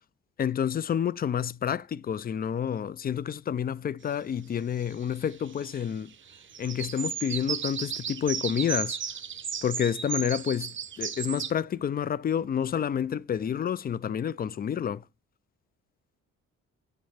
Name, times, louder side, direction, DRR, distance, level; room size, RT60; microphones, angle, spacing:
voice 1, 0.4-6.1 6.6-9.0 9.6-15.0, left 8 dB, 30° left, 0.4 m, -29 dB
sound 1, 4.9-5.9 6.1-11.5, right 7 dB, 40° right, 0.7 m, -34 dB
8.6 x 3.4 x 3.3 m
cardioid pair, 90°, 30 cm